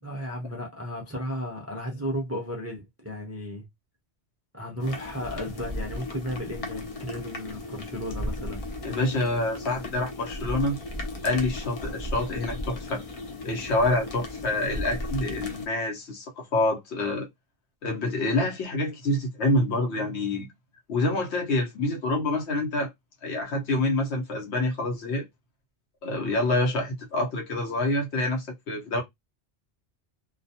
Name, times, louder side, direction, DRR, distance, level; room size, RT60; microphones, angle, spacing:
voice 1, 0.0-3.7 4.5-8.6, equal, 20° right, 0.4 m, -34 dB
sound 1, 4.8-15.7, left 1 dB, 45° left, 0.5 m, -36 dB
voice 2, 8.8-10.8 11.2-13.0 13.4-17.3 17.8-20.5 20.9-22.9 23.2-25.2 26.0-29.0, left 2 dB, 70° left, 1.0 m, -27 dB
2.3 x 2.2 x 2.7 m
omnidirectional pair, 1.2 m